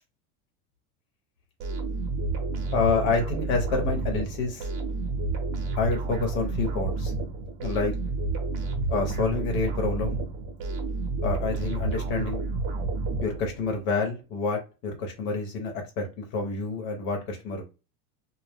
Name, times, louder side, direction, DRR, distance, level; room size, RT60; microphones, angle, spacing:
sound 1, 1.6-13.8, right 3 dB, 40° right, 0.8 m, -30 dB
voice 1, 2.7-4.7 5.8-7.1 7.6-7.9 8.9-10.2 11.2-12.4 13.2-17.8, left 4 dB, 60° left, 3 dB, 0.9 m, -28 dB
2.1 x 2.0 x 3.4 m, 0.30 s
supercardioid pair, 115°, 47 cm